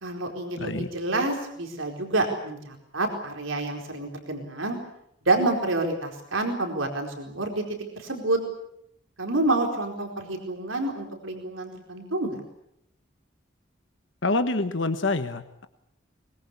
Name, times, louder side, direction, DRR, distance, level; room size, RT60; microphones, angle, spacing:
voice 1, 0.0-4.8 5.2-7.6 8.0-8.4 9.2-12.4, right 2 dB, 85° right, 3 dB, 4.5 m, -28 dB
voice 2, 0.6-0.9 14.2-15.7, left 2 dB, 70° left, 9 dB, 1.3 m, -26 dB
23.5 x 22.0 x 8.5 m, 0.77 s
head